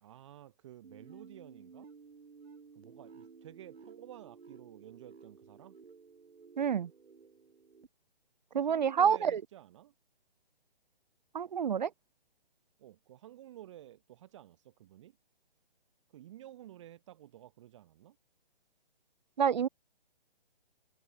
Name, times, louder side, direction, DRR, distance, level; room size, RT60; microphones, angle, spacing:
voice 1, 0.0-1.9 2.7-5.8 8.5-9.9 12.8-15.2 16.1-18.2, right 13 dB, 30° right, 1.3 m, -52 dB
sound 1, 0.8-7.9, right 5 dB, 90° right, 2.0 m, -55 dB
voice 2, 6.6-6.9 8.5-9.4 11.3-11.9 19.4-19.7, right 7 dB, 45° right, 0.5 m, -28 dB
open air
hypercardioid pair, 155°, 31 cm